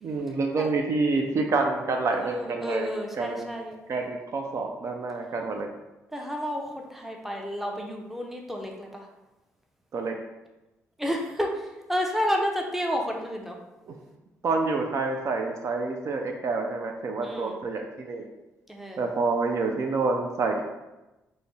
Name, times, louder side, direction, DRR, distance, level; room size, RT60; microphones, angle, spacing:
voice 1, 0.0-2.9 3.2-3.5 3.9-5.7 9.9-10.2 13.9-14.0 14.4-18.3 19.0-20.6, right 3 dB, 50° right, 2 dB, 0.4 m, -28 dB
voice 2, 2.1-3.8 6.1-9.1 11.0-13.6 17.2-17.6 18.7-19.0, equal, 5° right, 1 dB, 0.6 m, -31 dB
2.5 x 2.0 x 3.6 m, 1.0 s
hypercardioid pair, 50°, 6 cm